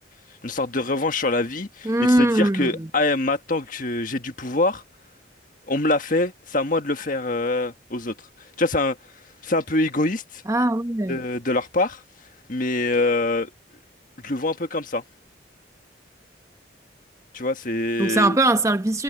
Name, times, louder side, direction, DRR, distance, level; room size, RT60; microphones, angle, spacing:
voice 1, 0.4-4.8 5.7-8.1 8.6-9.0 9.4-10.4 11.1-12.0 12.5-13.5 14.2-15.0 17.3-18.4, left 2 dB, 45° left, 1.6 m, -24 dB
voice 2, 1.8-2.9 10.5-11.2 18.0-19.0, right 1 dB, 15° right, 0.9 m, -21 dB
head